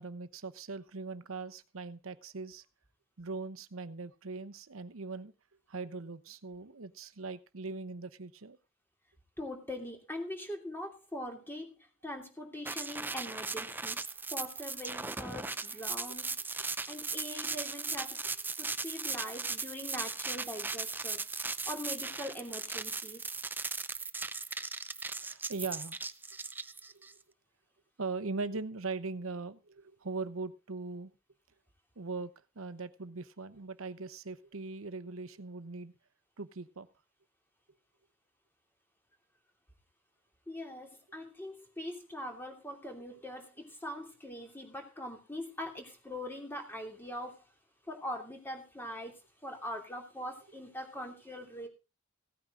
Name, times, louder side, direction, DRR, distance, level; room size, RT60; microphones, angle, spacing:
voice 1, 0.0-2.6 3.2-5.3 5.7-8.6 25.2-26.0 28.0-31.1 32.0-35.9 36.4-36.9, right 3 dB, 85° right, 14 dB, 0.9 m, -40 dB
voice 2, 9.4-14.0 14.3-18.2 18.6-21.2 21.7-23.2 40.5-47.4 47.9-49.1 49.4-51.7, left 1 dB, 10° left, 3 dB, 2.9 m, -42 dB
sound 1, 12.7-27.1, right 4 dB, 10° right, 0.5 m, -38 dB
16.5 x 9.2 x 3.8 m, 0.30 s
head